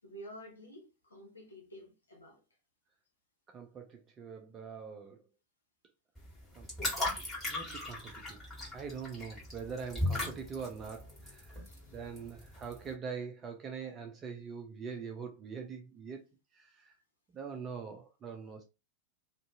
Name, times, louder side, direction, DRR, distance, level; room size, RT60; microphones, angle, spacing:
voice 1, 0.0-2.4 11.5-12.0, equal, 75° left, 0.8 m, -51 dB
voice 2, 3.5-5.2 6.6-6.7 7.4-8.4 8.7-16.2 16.5-17.0 17.3-18.6, right 6 dB, 25° right, 0.4 m, -43 dB
sound 1, 6.2-12.9, left 1 dB, 5° left, 1.7 m, -38 dB
2.6 x 2.4 x 2.4 m
figure-of-eight pair, 90°, 0 cm